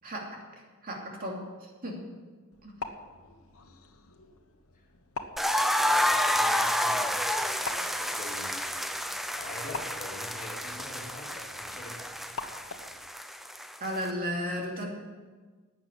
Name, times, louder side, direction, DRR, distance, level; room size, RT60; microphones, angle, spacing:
voice 1, 0.0-0.4 0.8-2.0 2.6-2.7 13.8-14.9, equal, 40° right, 0 dB, 2.8 m, -34 dB
sound 1, 2.5-13.1, left 3 dB, 70° left, 1.3 m, -45 dB
sound 2, 5.4-14.1, equal, ahead, 0.6 m, -30 dB
voice 2, 5.8-8.9 9.4-12.2, left 2 dB, 40° left, -1 dB, 2.9 m, -45 dB
12.0 x 8.9 x 9.9 m, 1.4 s
head